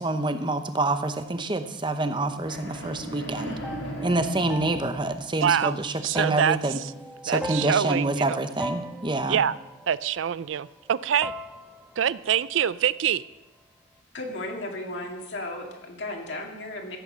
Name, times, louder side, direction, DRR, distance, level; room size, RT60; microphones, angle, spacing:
voice 1, 0.0-3.6 4.0-6.8 7.2-9.4, right 2 dB, 25° right, 8 dB, 0.8 m, -27 dB
sound 1, 2.0-10.9 11.2-13.3, right 1 dB, 5° right, 0.5 m, -41 dB
sound 2, 2.4-5.7, right 1 dB, 85° left, 5.1 m, -37 dB
voice 2, 5.4-5.8 6.0-6.6 7.3-8.2 9.3-9.5 9.9-11.3 12.0-13.2, right 8 dB, 75° right, 18 dB, 0.4 m, -24 dB
voice 3, 14.1-17.0, left 1 dB, 65° left, 1 dB, 2.2 m, -35 dB
15.0 x 8.8 x 5.7 m, 0.99 s
head